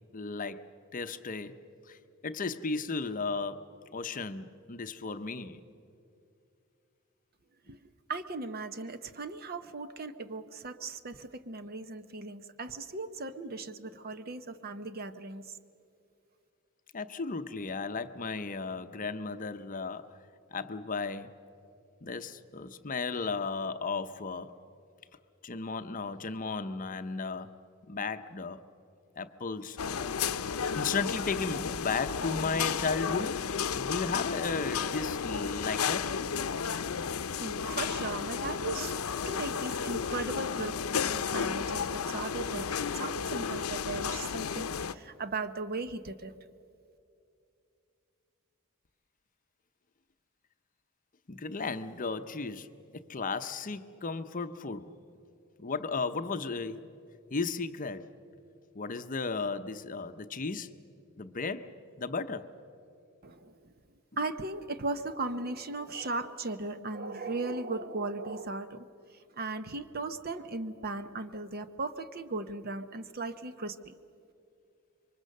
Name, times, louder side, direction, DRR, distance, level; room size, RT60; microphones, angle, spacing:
voice 1, 0.1-0.7 0.9-5.6 16.9-20.2 20.5-21.4 22.0-24.6 25.4-27.5 27.9-28.6 29.2-29.8 30.7-36.2 40.4-40.6 51.3-52.7 52.9-55.0 55.6-57.0 57.3-58.1 58.7-60.7 61.2-62.5, left 4 dB, 40° left, 0.7 m, -35 dB
voice 2, 8.1-15.6 37.4-38.9 39.3-42.7 43.0-46.3 63.2-63.7 64.2-68.9 69.4-74.0, right 3 dB, 45° right, 0.9 m, -37 dB
sound 1, 29.8-44.9, left 6 dB, 85° left, 0.7 m, -33 dB
27.0 x 24.0 x 6.6 m
head